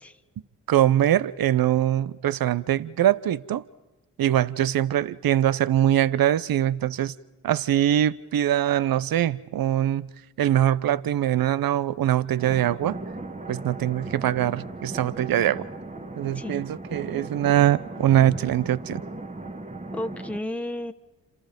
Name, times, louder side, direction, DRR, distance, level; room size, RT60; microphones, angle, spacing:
voice 1, 0.7-3.6 4.2-7.1 7.4-10.1 10.4-13.0 13.5-15.6 16.2-19.0, right 11 dB, 60° right, 0.9 m, -22 dB
sound 1, 12.4-20.4, right 2 dB, 20° right, 1.8 m, -37 dB
voice 2, 19.9-20.9, left 1 dB, 5° left, 1.3 m, -32 dB
28.5 x 27.5 x 5.3 m
hypercardioid pair, 45°, 39 cm